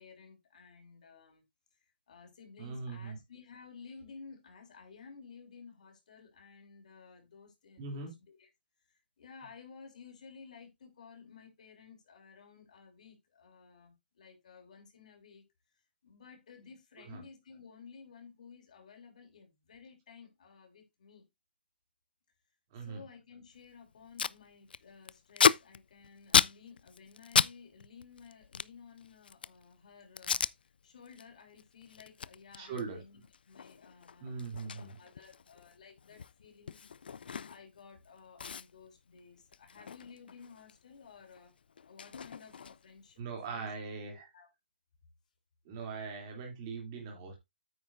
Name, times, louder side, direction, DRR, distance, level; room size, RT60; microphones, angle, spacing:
voice 1, 0.0-1.4 1.7-8.5 8.9-15.4 15.7-21.2 22.8-36.8 37.5-41.5 41.8-43.2 43.5-43.7 44.1-44.5, left 5 dB, 45° left, 3.2 m, -55 dB
voice 2, 2.6-3.2 7.8-8.1 17.1-17.2 22.7-23.0 32.6-33.0 34.2-35.0 43.2-44.3 45.6-47.4, right 4 dB, 20° right, 2.9 m, -41 dB
Packing tape duct tape, 23.6-23.7 23.9-24.4 24.7-27.5 27.8-29.6 30.2-30.5 31.0-31.2 31.6-37.8 38.0-38.1 38.4-40.8 41.0-43.0, left 6 dB, 60° left, 0.4 m, -33 dB
9.0 x 8.8 x 2.6 m
hypercardioid pair, 180°, 6 cm